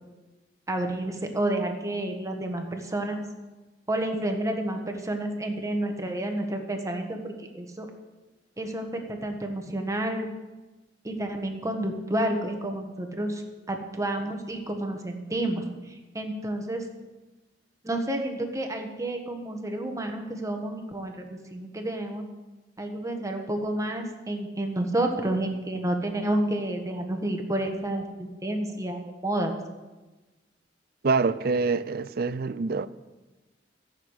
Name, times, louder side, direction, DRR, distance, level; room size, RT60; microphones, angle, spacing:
voice 1, 0.7-3.2 3.9-7.9 8.6-10.3 11.0-13.4 13.7-16.9 17.8-22.2 22.8-29.6, right 1 dB, 20° right, 1.4 m, -30 dB
voice 2, 31.0-32.9, right 4 dB, 60° right, 0.5 m, -25 dB
14.5 x 6.6 x 8.1 m
head